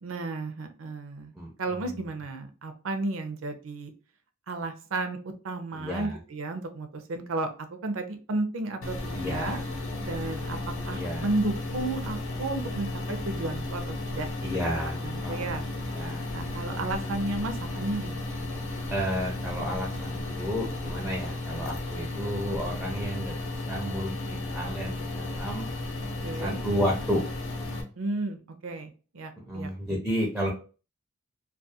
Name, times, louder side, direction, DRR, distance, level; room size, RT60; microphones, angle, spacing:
voice 1, 0.0-1.3 1.6-3.9 4.5-7.5 7.8-9.6 10.0-10.6 10.9-14.3 14.6-15.6 16.3-18.2 26.2-26.6 28.0-29.7, right 2 dB, 75° right, 7 dB, 0.5 m, -33 dB
voice 2, 1.4-2.0 5.7-6.2 9.1-9.6 10.9-11.3 14.4-15.6 15.9-16.3 18.9-25.7 26.4-27.2 29.4-30.5, equal, 5° right, -1 dB, 0.4 m, -32 dB
sound 1, 8.8-27.8, left 2 dB, 80° left, 0.6 m, -34 dB
2.4 x 2.2 x 2.7 m, 0.36 s
head